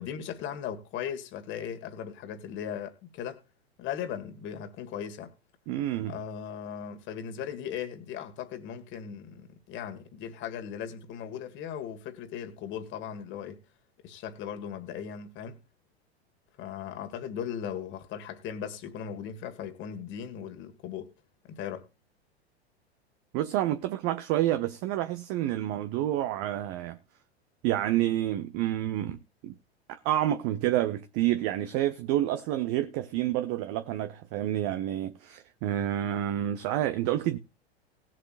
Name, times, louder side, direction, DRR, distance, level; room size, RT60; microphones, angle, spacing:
voice 1, 0.0-3.4 3.8-5.3 6.1-13.6 14.0-15.6 16.6-21.1 21.5-21.9, left 8 dB, 35° left, 1.9 m, -38 dB
voice 2, 5.7-6.2 23.3-27.0 27.6-29.5 29.9-37.4, right 13 dB, 40° right, 0.9 m, -29 dB
19.0 x 7.5 x 2.5 m
figure-of-eight pair, 90°, 33 cm